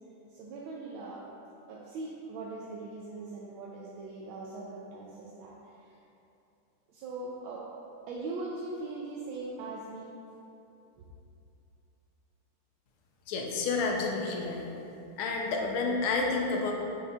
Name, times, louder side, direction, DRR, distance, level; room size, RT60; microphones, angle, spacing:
voice 1, 0.3-1.2 1.7-5.9 6.9-7.7 8.1-10.1 11.0-11.1, right 3 dB, 80° right, -4 dB, 1.4 m, -40 dB
voice 2, 13.3-14.7 15.2-16.7, left 3 dB, 85° left, 0 dB, 1.6 m, -30 dB
6.8 x 6.3 x 2.4 m, 2.8 s
omnidirectional pair, 2.3 m